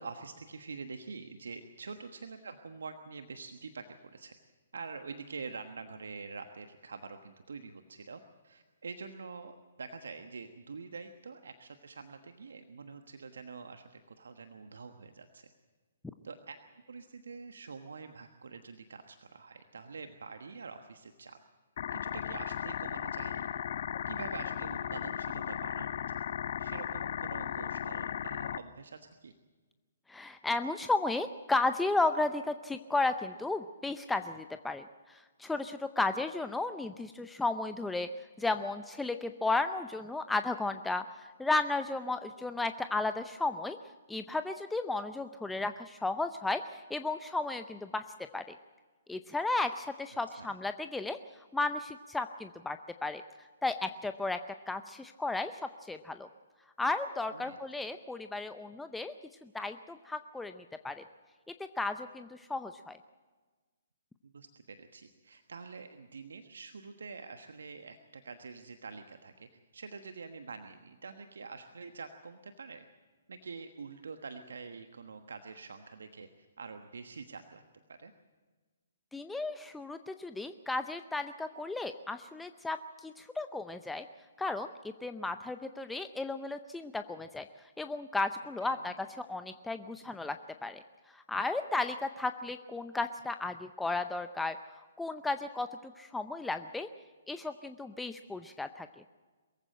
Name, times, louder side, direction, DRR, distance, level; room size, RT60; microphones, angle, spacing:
voice 1, 0.0-3.8 4.1-4.3 4.7-15.5 16.2-16.6 16.9-21.4 21.9-23.5 24.1-26.3 26.6-29.3 50.3-50.6 57.3-57.6 64.2-72.9 73.3-77.6 77.9-78.1 88.6-88.9, right 4 dB, 70° right, 7 dB, 1.3 m, -46 dB
sound 1, 21.8-28.6, left 9 dB, 50° left, 0.8 m, -36 dB
voice 2, 30.1-38.1 38.4-43.8 44.1-48.0 48.3-48.6 49.1-53.2 53.6-54.4 54.7-56.3 56.8-59.1 59.4-61.0 61.8-63.0 79.1-84.1 84.4-87.5 87.8-90.4 90.6-94.6 95.0-96.9 97.3-98.9, left 3 dB, 5° left, 9 dB, 0.6 m, -34 dB
23.0 x 15.0 x 7.7 m, 1.3 s
figure-of-eight pair, 130°, 0 cm